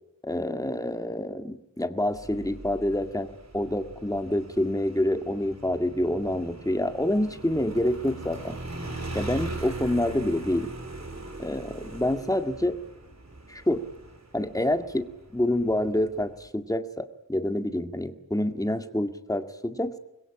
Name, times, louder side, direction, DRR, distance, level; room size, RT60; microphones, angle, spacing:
voice 1, 0.2-8.6 9.2-10.7 11.4-12.8 13.5-13.8 14.3-20.0, left 1 dB, 10° left, 8 dB, 1.9 m, -27 dB
Motorcycle, 2.1-16.4, right 2 dB, 55° right, 4.3 m, -41 dB
26.0 x 22.0 x 8.9 m, 0.92 s
wide cardioid pair, 55°, 32 cm